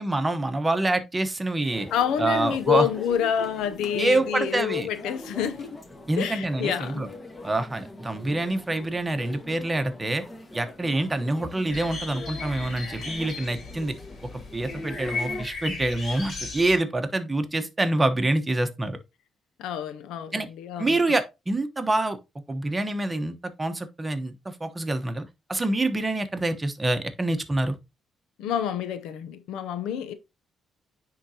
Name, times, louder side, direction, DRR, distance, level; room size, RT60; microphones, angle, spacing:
voice 1, 0.0-1.9 2.2-2.9 3.9-4.9 6.1-7.1 7.4-10.2 10.5-13.9 14.5-19.0 20.3-20.5 20.8-22.2 22.5-25.2 25.5-27.7, right 2 dB, 20° right, 1.1 m, -26 dB
sound 1, 1.7-15.5, left 1 dB, 25° left, 1.5 m, -42 dB
voice 2, 1.9-5.8 6.2-7.1 19.6-21.0 28.4-30.1, left 9 dB, 90° left, 0.7 m, -28 dB
sound 2, 11.7-16.8, left 3 dB, 55° left, 3.1 m, -36 dB
9.8 x 3.9 x 2.9 m
cardioid pair, 90°, 0 cm